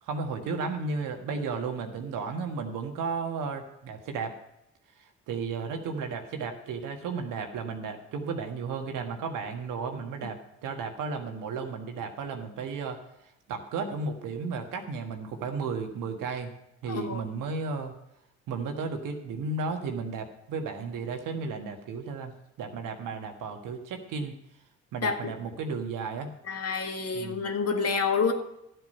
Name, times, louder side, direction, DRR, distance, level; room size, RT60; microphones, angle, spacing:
voice 1, 0.0-4.4 5.0-13.0 13.5-16.5 16.8-18.0 18.5-24.4 24.9-26.3 27.1-27.5, right 4 dB, 70° right, 4 dB, 1.6 m, -34 dB
voice 2, 16.9-17.2 25.0-25.3 26.4-28.3, left 5 dB, 45° left, 4 dB, 1.9 m, -28 dB
12.5 x 8.0 x 5.4 m, 0.83 s
hypercardioid pair, 45°, 34 cm